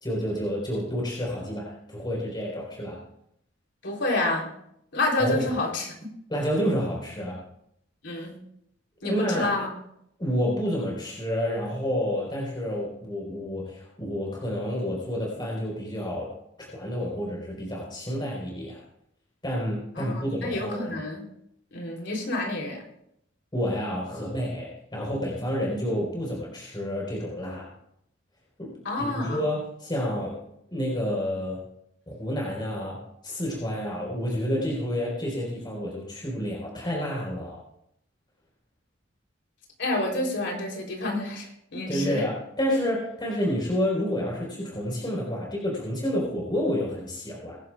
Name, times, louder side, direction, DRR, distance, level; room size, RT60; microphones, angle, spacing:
voice 1, 0.0-3.0 5.2-5.5 6.3-7.4 9.0-9.6 10.2-18.8 19.4-21.0 23.5-27.7 28.6-30.4 30.7-31.6 32.1-33.0 33.2-37.6 41.9-47.6, equal, 25° left, -3 dB, 4.3 m, -29 dB
voice 2, 3.8-4.5 4.9-5.9 8.0-8.4 9.0-9.7 20.0-21.3 21.7-22.8 28.8-29.4 39.8-42.2, left 2 dB, 65° left, 0 dB, 3.5 m, -28 dB
22.5 x 11.0 x 2.4 m, 0.75 s
head